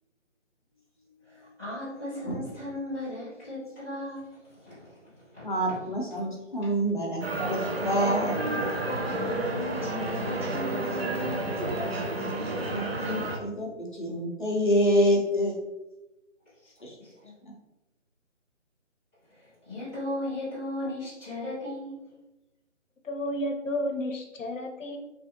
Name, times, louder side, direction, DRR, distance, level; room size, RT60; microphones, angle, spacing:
voice 1, 1.2-5.5 9.2-11.6 16.6-16.7 17.0-17.3 19.3-22.0, left 1 dB, 10° right, -16 dB, 0.8 m, -37 dB
voice 2, 5.4-8.4 12.7-15.6 16.8-17.0 17.4-17.5, equal, 40° left, -2 dB, 0.7 m, -27 dB
sound 1, 7.2-13.4, right 2 dB, 55° right, 0.6 m, -30 dB
voice 3, 23.0-25.0, left 1 dB, 80° left, 3 dB, 0.7 m, -31 dB
3.3 x 2.5 x 2.6 m, 1.0 s
figure-of-eight pair, 170°, 37 cm